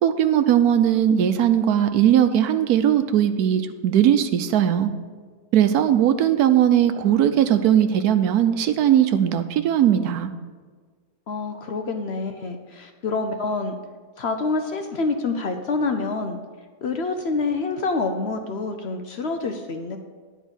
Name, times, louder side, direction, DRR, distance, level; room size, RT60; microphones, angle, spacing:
voice 1, 0.0-4.9 5.5-10.3, right 10 dB, 85° right, 10 dB, 1.2 m, -19 dB
voice 2, 11.3-13.8 14.2-16.4 16.8-20.0, left 3 dB, 60° left, 6 dB, 0.7 m, -27 dB
10.0 x 4.5 x 7.9 m, 1.5 s
omnidirectional pair, 1.6 m